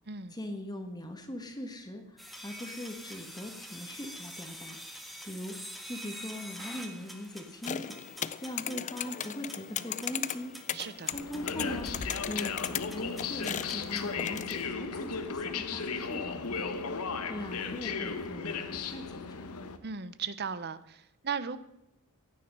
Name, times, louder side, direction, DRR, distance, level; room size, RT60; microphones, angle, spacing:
voice 1, 0.3-4.8 5.2-8.0 8.4-10.6 11.1-16.7 17.0-19.4, left 1 dB, 20° left, 6 dB, 1.5 m, -41 dB
sound 1, 2.2-14.1, equal, ahead, 1.6 m, -47 dB
sound 2, 7.6-14.7, left 9 dB, 35° left, 0.4 m, -37 dB
voice 2, 10.7-11.1 19.8-21.6, right 6 dB, 45° right, 14 dB, 0.8 m, -37 dB
sound 3, 11.1-19.8, left 5 dB, 80° left, 1.2 m, -35 dB
16.5 x 9.8 x 5.5 m, 0.86 s
head